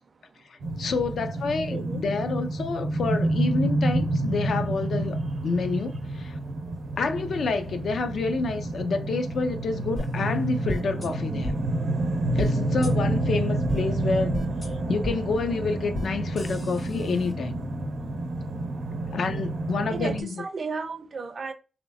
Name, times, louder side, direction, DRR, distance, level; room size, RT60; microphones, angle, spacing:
voice 1, 0.5-5.2 5.4-6.4 7.0-11.5 12.3-14.4 14.9-17.6 19.1-20.4, left 4 dB, 75° left, 0.5 m, -28 dB
sound 1, 0.6-20.2, right 1 dB, 90° right, 0.7 m, -29 dB
voice 2, 1.7-2.1 19.9-21.5, right 4 dB, 45° right, 0.4 m, -34 dB
sound 2, 10.0-10.1 10.7-11.1 11.4-11.5 12.4-12.5 12.8-12.9 13.7-13.8 14.3-14.7 15.0-15.1 15.9-16.1 16.4-17.3, left 1 dB, 20° left, 0.5 m, -33 dB
3.1 x 2.8 x 2.6 m
wide cardioid pair, 120°, 0 cm